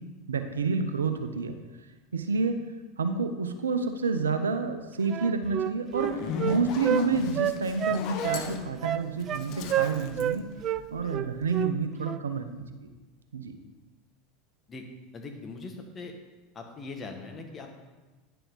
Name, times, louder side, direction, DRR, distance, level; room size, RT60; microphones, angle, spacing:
voice 1, 0.3-1.6 2.1-2.6 3.0-6.1 6.4-10.5 10.9-12.9 13.3-13.5, right 4 dB, 85° right, 8 dB, 0.7 m, -29 dB
Wind instrument woodwind instrument, 5.1-7.0 7.4-8.5 8.8-9.4 9.7-10.4 10.6-10.8 11.1-11.7 12.0-12.2, right 10 dB, 40° right, 0.4 m, -29 dB
Zipper (clothing), 5.9-11.2, left 6 dB, 55° left, 0.9 m, -37 dB
voice 2, 15.1-16.1 16.5-17.7, left 3 dB, 30° left, 3 dB, 1.6 m, -40 dB
10.0 x 6.8 x 3.8 m, 1.2 s
hypercardioid pair, 85°, 0 cm